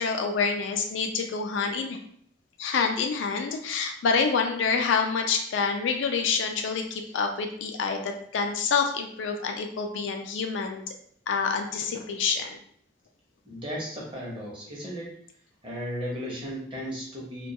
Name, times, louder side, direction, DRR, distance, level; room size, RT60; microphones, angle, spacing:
voice 1, 0.0-2.0 2.6-10.8 11.3-12.6, left 5 dB, 70° left, 4 dB, 0.3 m, -27 dB
voice 2, 13.4-15.1 15.6-17.5, equal, 25° right, -4 dB, 0.7 m, -35 dB
2.2 x 2.1 x 2.7 m, 0.63 s
head